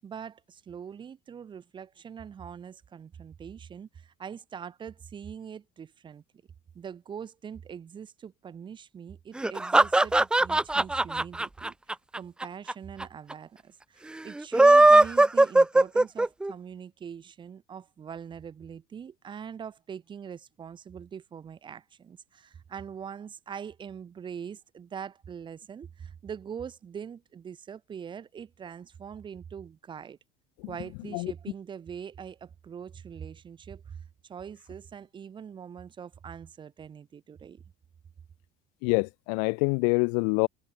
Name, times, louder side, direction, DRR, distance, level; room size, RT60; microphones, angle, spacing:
voice 1, 0.0-6.2 6.7-11.7 12.1-30.2 30.7-34.0 34.2-37.6, right 7 dB, 25° right, 7.3 m, -42 dB
sound 1, 9.4-12.7 13.0-13.1 13.3-13.4 14.4-16.5, right 2 dB, 5° right, 0.4 m, -19 dB
voice 2, 38.8-40.5, left 40 dB or more, 85° left, 0.6 m, -25 dB
cardioid pair, 175°, 20 cm